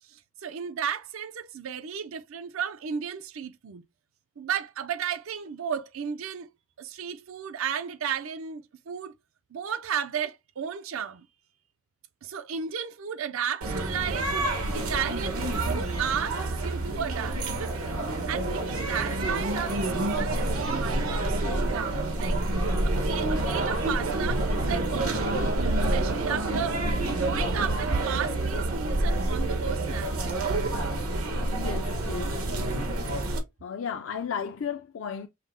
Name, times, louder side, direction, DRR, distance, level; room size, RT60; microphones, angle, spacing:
voice 1, 0.1-3.8 4.4-6.5 6.8-9.1 9.5-11.3 12.2-14.4 14.7-17.8 18.3-22.4 22.8-26.8 27.1-30.6, right 8 dB, 75° right, 0.5 m, -34 dB
sound 1, 13.6-33.4, right 2 dB, 90° right, 1.2 m, -28 dB
voice 2, 31.6-32.4 33.6-35.3, left 7 dB, 65° left, 0.4 m, -34 dB
5.5 x 2.1 x 3.7 m
head